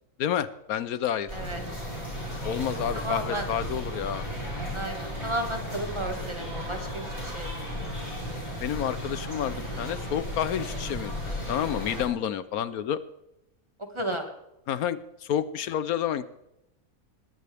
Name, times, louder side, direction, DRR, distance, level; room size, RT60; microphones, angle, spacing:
voice 1, 0.2-1.3 2.4-4.2 8.6-13.0 14.7-15.0 15.3-16.3, left 9 dB, 75° left, 14 dB, 1.2 m, -29 dB
sound 1, 1.3-12.1, equal, 25° left, 6.1 m, -35 dB
voice 2, 2.9-3.5 4.7-7.7 13.9-14.3, right 1 dB, 20° right, 4 dB, 1.9 m, -33 dB
20.0 x 15.0 x 3.5 m, 0.86 s
omnidirectional pair, 1.6 m